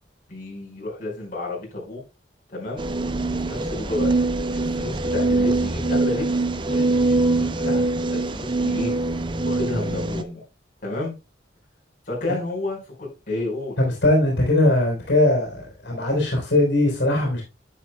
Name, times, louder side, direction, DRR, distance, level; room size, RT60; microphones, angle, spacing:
voice 1, 0.3-2.0 2.5-2.8 3.5-4.1 4.7-6.3 6.7-7.8 8.1-8.9 9.4-10.4 10.8-11.2 12.1-13.8, left 2 dB, 45° left, 4.7 m, -31 dB
sound 1, 2.8-10.2, right 2 dB, 25° right, 0.7 m, -23 dB
voice 2, 13.8-17.4, left 1 dB, 75° left, 3.9 m, -20 dB
10.5 x 8.8 x 2.2 m
head